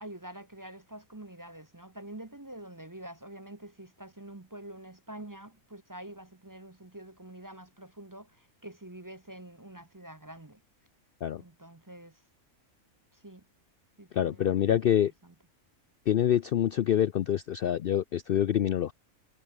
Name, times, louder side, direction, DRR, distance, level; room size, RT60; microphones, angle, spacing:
voice 1, 0.0-10.6 11.4-12.2 13.1-13.4 14.0-15.3, right 1 dB, 15° right, 0.8 m, -46 dB
voice 2, 14.1-15.1 16.1-18.9, left 10 dB, 60° left, 0.6 m, -26 dB
omnidirectional pair, 1.4 m